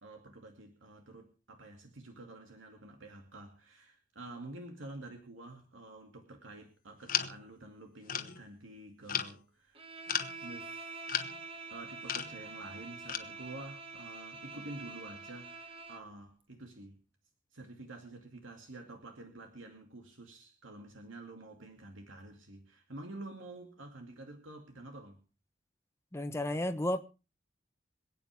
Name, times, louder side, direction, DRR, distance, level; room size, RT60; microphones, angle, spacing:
voice 1, 0.0-9.9 10.4-11.0 11.7-17.0 17.5-25.2, right 2 dB, 90° right, 2.4 m, -49 dB
sound 1, 7.1-7.5 8.1-8.4 9.1-9.3 10.1-10.3 11.1-11.4 12.0-12.4 13.1-13.2, left 9 dB, 45° left, 1.1 m, -34 dB
Bowed string instrument, 9.7-16.1, right 3 dB, 30° right, 1.5 m, -46 dB
voice 2, 26.1-27.0, left 1 dB, 15° left, 1.0 m, -32 dB
26.5 x 9.0 x 3.4 m
head